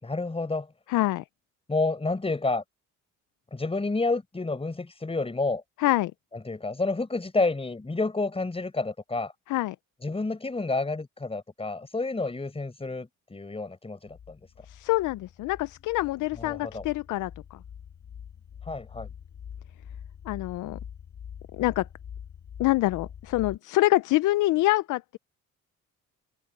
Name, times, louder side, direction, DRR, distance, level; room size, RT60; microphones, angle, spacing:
voice 1, 0.0-0.7 1.7-2.6 3.5-5.6 6.4-9.3 10.0-14.4 16.4-16.8 18.6-19.1, left 3 dB, 20° left, 4.8 m, -29 dB
voice 2, 0.9-1.2 5.8-6.1 9.5-9.8 14.7-17.6 20.3-20.8 21.5-21.9 22.6-25.2, left 18 dB, 80° left, 0.6 m, -26 dB
sound 1, 14.1-23.6, left 8 dB, 60° left, 4.6 m, -44 dB
cardioid pair, 90°, 30 cm